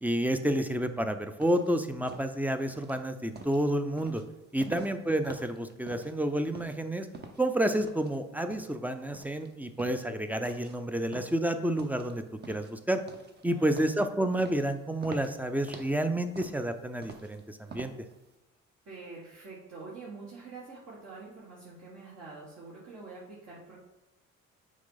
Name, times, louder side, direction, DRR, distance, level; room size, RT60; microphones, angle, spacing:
voice 1, 0.0-4.2 4.5-7.1 7.4-13.0 13.4-17.9, right 1 dB, 5° right, 8 dB, 0.5 m, -30 dB
sound 1, 1.4-18.3, right 3 dB, 35° right, 0.8 m, -48 dB
voice 2, 18.8-23.8, right 3 dB, 60° right, -6 dB, 1.7 m, -46 dB
6.3 x 4.1 x 3.9 m, 1.0 s
cardioid pair, 90°, 30 cm